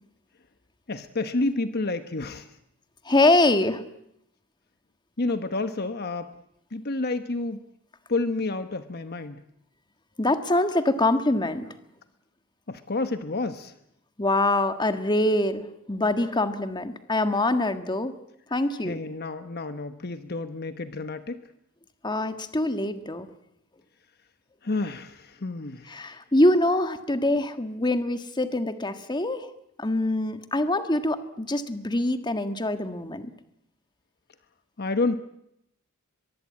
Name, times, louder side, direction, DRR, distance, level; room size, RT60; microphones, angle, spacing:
voice 1, 0.9-2.5 5.2-6.3 6.7-7.6 8.1-9.4 12.7-13.7 18.8-21.4 24.6-26.0 34.8-35.2, left 2 dB, 45° left, 10 dB, 1.1 m, -29 dB
voice 2, 3.0-3.8 10.2-11.7 14.2-18.1 18.5-18.9 22.0-23.3 25.9-29.5 29.8-33.3, left 2 dB, 20° left, 9 dB, 1.6 m, -24 dB
23.5 x 22.5 x 8.5 m, 0.79 s
head